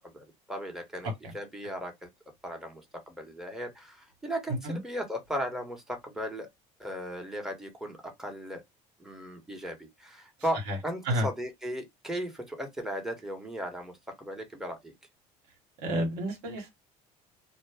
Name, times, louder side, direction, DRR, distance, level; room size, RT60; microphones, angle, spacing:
voice 1, 0.1-1.1 1.3-2.1 2.4-2.8 3.1-6.5 6.8-8.6 9.0-14.9, equal, 5° right, 1.0 m, -36 dB
voice 2, 1.0-1.4 4.5-4.8 10.7-10.8 11.0-11.3 15.8-16.7, right 1 dB, 75° right, 1.1 m, -31 dB
2.1 x 2.1 x 3.3 m
supercardioid pair, 90°, 17 cm